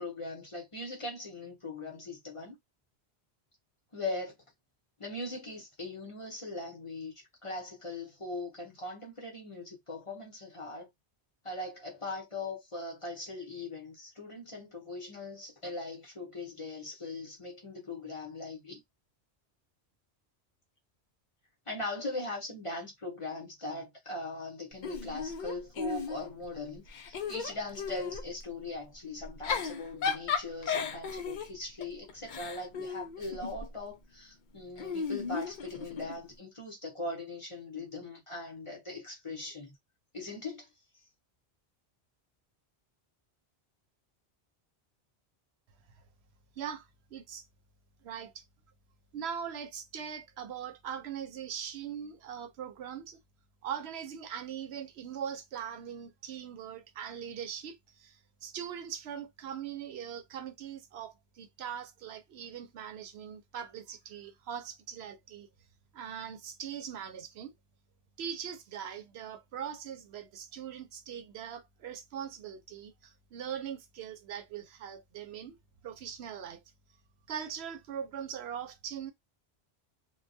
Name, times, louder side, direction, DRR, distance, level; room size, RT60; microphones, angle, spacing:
voice 1, 0.0-2.6 3.9-4.3 5.0-7.1 7.4-10.9 11.4-18.8 21.7-39.8 40.1-40.7, left 2 dB, 30° left, 0.8 m, -40 dB
Giggle / Chuckle chortle, 24.8-26.5 26.9-28.3 29.2-33.7 34.8-36.2, left 6 dB, 60° left, 0.6 m, -35 dB
voice 2, 46.6-47.5 48.0-48.4 49.1-53.2 53.6-65.5 65.9-67.5 68.2-75.6 75.8-76.6 77.3-79.1, right 8 dB, 75° right, 0.8 m, -41 dB
2.2 x 2.2 x 2.6 m
omnidirectional pair, 1.1 m